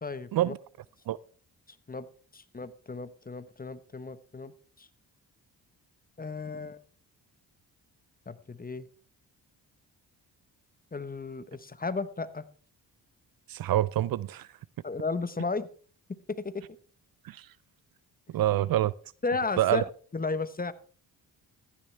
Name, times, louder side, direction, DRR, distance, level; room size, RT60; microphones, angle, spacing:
voice 1, 0.0-0.5 1.9-2.1 2.3-4.9 6.2-6.8 8.3-8.9 10.9-12.4 14.8-15.7 16.1-16.7 19.2-19.8 20.1-20.7, left 3 dB, 20° left, 0.9 m, -34 dB
voice 2, 13.5-14.5 17.2-17.5 18.3-18.9 19.6-19.8, right 13 dB, 60° right, 0.5 m, -26 dB
14.0 x 10.0 x 3.3 m
cardioid pair, 60°, 41 cm